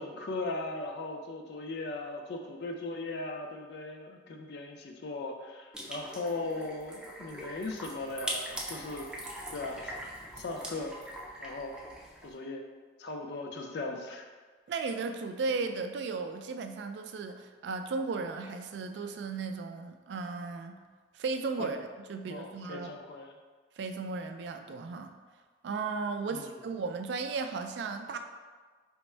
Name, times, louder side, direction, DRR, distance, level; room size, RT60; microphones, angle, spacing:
voice 1, 0.0-9.1 9.5-10.0 10.4-10.9 11.4-11.8 12.2-12.6 13.0-14.3 21.6-21.7 22.3-23.3 26.3-26.4, left 2 dB, 65° left, 3 dB, 0.4 m, -38 dB
sound 1, 5.7-12.3, right 1 dB, 5° right, 0.4 m, -42 dB
voice 2, 14.7-20.8 21.1-23.0 23.8-25.1 25.6-28.2, right 4 dB, 75° right, 7 dB, 0.3 m, -35 dB
3.4 x 2.1 x 4.3 m, 1.4 s
head